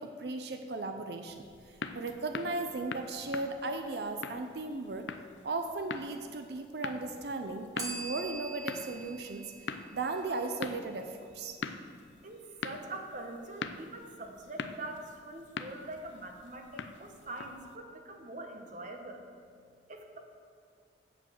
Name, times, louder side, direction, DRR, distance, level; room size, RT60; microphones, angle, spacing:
voice 1, 0.0-5.1 5.4-9.5 9.9-11.6, right 3 dB, 60° right, 6 dB, 0.6 m, -36 dB
sound 1, 1.3-17.8, left 5 dB, 85° left, 0.6 m, -44 dB
Bell, 7.8-10.6, right 3 dB, 20° right, 1.6 m, -43 dB
voice 2, 12.2-19.2 19.9-20.2, right 2 dB, 45° right, 3 dB, 1.2 m, -44 dB
8.7 x 7.1 x 7.5 m, 2.1 s
head